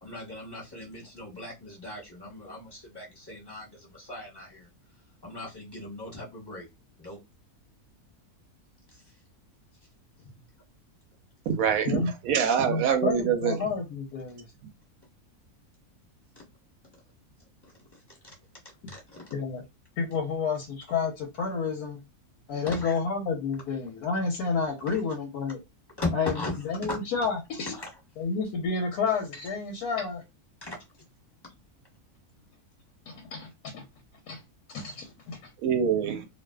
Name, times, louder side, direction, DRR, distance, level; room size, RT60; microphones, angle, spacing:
voice 1, 0.0-4.7 5.2-6.7 7.0-7.2 8.9-9.1 16.4-16.5 17.6-18.3 18.9-19.3 22.7-22.9 24.9-25.0 26.0-27.0 27.7-27.9 30.6-30.8, left 2 dB, 20° left, 1.0 m, -38 dB
voice 2, 11.5-13.6 35.6-36.2, right 7 dB, 70° right, 0.9 m, -25 dB
voice 3, 12.7-14.5 18.8-18.9 19.3-19.6 20.0-22.0 22.5-25.6 26.1-26.3 26.6-27.7 28.2-30.2 33.1-33.9 34.3-34.4 34.7-35.5, left 5 dB, 90° left, 1.1 m, -30 dB
2.5 x 2.4 x 2.2 m
omnidirectional pair, 1.6 m